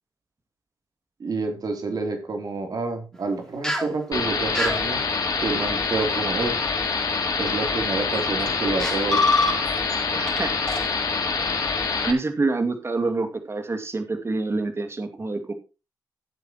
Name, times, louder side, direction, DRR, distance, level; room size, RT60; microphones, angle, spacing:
voice 1, 1.2-5.0 5.4-6.6 7.4-9.2, right 3 dB, 55° right, 5 dB, 3.2 m, -28 dB
sound 1, 3.6-3.9 4.5-4.8 6.5-6.6 7.5-7.8 8.5-8.6 8.8-9.9 10.3-10.4 10.7-10.8, left 2 dB, 10° left, 4.1 m, -23 dB
sound 2, 4.1-12.1, left 4 dB, 55° left, 2.8 m, -25 dB
voice 2, 10.1-10.8 12.0-15.5, right 3 dB, 35° right, 7 dB, 2.3 m, -27 dB
15.0 x 8.0 x 3.0 m, 0.30 s
cardioid pair, 60°, 7 cm